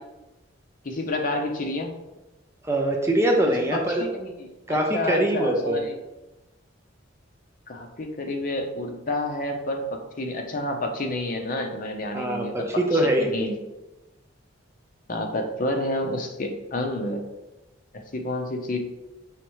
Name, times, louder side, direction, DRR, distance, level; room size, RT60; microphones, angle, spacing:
voice 1, 0.8-1.9 3.6-4.3 4.7-5.9 7.7-12.5 12.9-13.5 15.1-17.2 17.9-18.8, left 1 dB, 45° left, 3 dB, 0.6 m, -29 dB
voice 2, 2.6-4.0 4.7-5.8 12.1-13.5, right 1 dB, 15° right, 1 dB, 0.5 m, -23 dB
4.9 x 3.2 x 3.0 m, 1.0 s
head